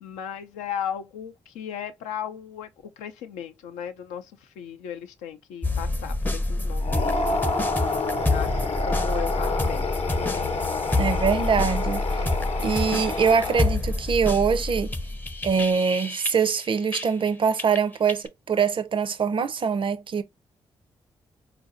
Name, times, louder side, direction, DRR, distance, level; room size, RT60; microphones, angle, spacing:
voice 1, 0.0-2.7 3.0-7.4 8.3-9.9, left 9 dB, 90° left, 0.4 m, -36 dB
sound 1, 5.6-17.3 17.6-18.3, left 2 dB, 15° left, 0.5 m, -28 dB
sound 2, 6.8-14.0, left 3 dB, 60° left, 0.8 m, -28 dB
voice 2, 11.0-12.0 12.6-14.9 15.4-20.2, right 6 dB, 45° right, 0.5 m, -23 dB
3.9 x 2.5 x 2.5 m
supercardioid pair, 45°, 12 cm